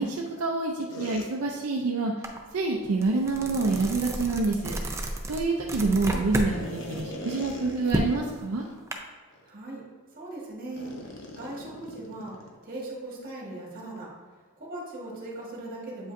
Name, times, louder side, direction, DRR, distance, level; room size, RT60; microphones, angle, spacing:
voice 1, 0.0-2.1 2.5-4.7 5.3-8.6, right 3 dB, 70° right, 0 dB, 0.5 m, -27 dB
sound 1, 0.9-1.3 3.3-4.0 6.5-8.2 8.6-8.7 9.3-9.5 10.8-12.6, left 1 dB, 55° left, 0.7 m, -41 dB
sound 2, 2.2-2.4 2.8-6.5 6.9-8.9, right 1 dB, 10° right, 0.4 m, -32 dB
voice 2, 9.5-9.8 10.1-12.3 12.6-14.1 14.6-16.1, right 2 dB, 40° right, -3 dB, 1.5 m, -39 dB
7.6 x 5.0 x 2.6 m, 1.5 s
head